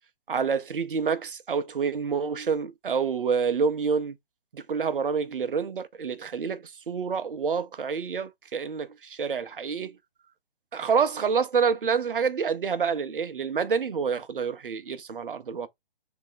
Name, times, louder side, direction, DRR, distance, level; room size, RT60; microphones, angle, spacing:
voice 1, 0.3-4.2 4.5-9.9 10.7-15.7, right 6 dB, 65° right, 0.6 m, -27 dB
3.3 x 2.8 x 3.8 m
figure-of-eight pair, 130°, 29 cm